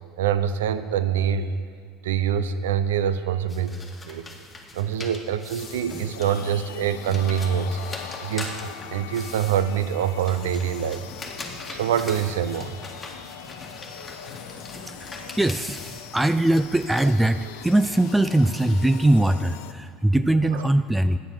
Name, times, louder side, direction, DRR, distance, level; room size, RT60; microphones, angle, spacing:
voice 1, 0.2-1.5 2.0-3.7 4.1-4.3 4.7-7.8 8.2-11.0 11.7-12.8 20.5-20.6, right 8 dB, 85° right, 13 dB, 0.5 m, -25 dB
sound 1, 3.5-19.1, left 2 dB, 20° left, 1.9 m, -41 dB
sound 2, 5.6-19.7, left 9 dB, 75° left, 0.5 m, -41 dB
voice 2, 14.9-15.8 16.1-21.2, right 1 dB, 10° right, 11 dB, 0.3 m, -21 dB
9.4 x 7.0 x 6.5 m, 2.3 s
hypercardioid pair, 75°, 0 cm